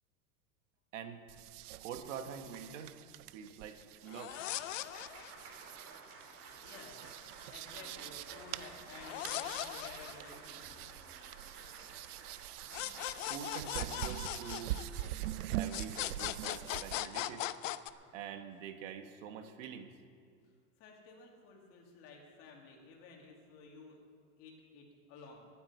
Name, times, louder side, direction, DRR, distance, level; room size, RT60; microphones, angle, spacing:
sound 1, 1.3-17.0, right 14 dB, 75° right, 0.6 m, -44 dB
voice 1, 1.8-3.0 3.3-4.4 13.3-14.8 15.5-17.5 18.1-19.9, right 8 dB, 55° right, 7 dB, 1.4 m, -45 dB
Applause, 3.9-18.6, right 3 dB, 30° right, 2.4 m, -55 dB
sound 2, 4.1-5.5 9.0-10.6 12.7-15.3 15.7-17.9, left 14 dB, 55° left, 0.6 m, -39 dB
voice 2, 6.6-10.8 20.8-24.0 24.4-25.5, left 4 dB, 30° left, 0 dB, 2.3 m, -54 dB
11.5 x 9.5 x 9.3 m, 2.2 s
supercardioid pair, 180°, 46 cm